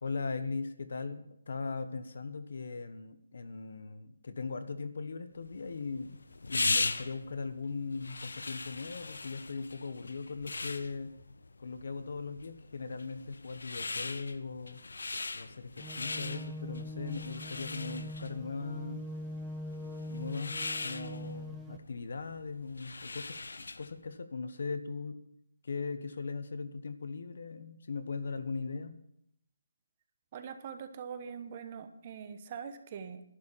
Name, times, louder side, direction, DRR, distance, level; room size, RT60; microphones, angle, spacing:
voice 1, 0.0-11.1 11.6-14.8 15.3-19.0 20.1-25.2 25.6-29.0, left 4 dB, 60° left, 10 dB, 1.3 m, -39 dB
sound 1, 5.5-24.0, left 3 dB, 90° left, 0.9 m, -39 dB
sound 2, 15.8-21.8, equal, 5° right, 0.7 m, -42 dB
voice 2, 30.3-33.2, right 7 dB, 30° right, 9 dB, 1.0 m, -43 dB
11.5 x 9.5 x 7.2 m, 0.75 s
hypercardioid pair, 170°, 0 cm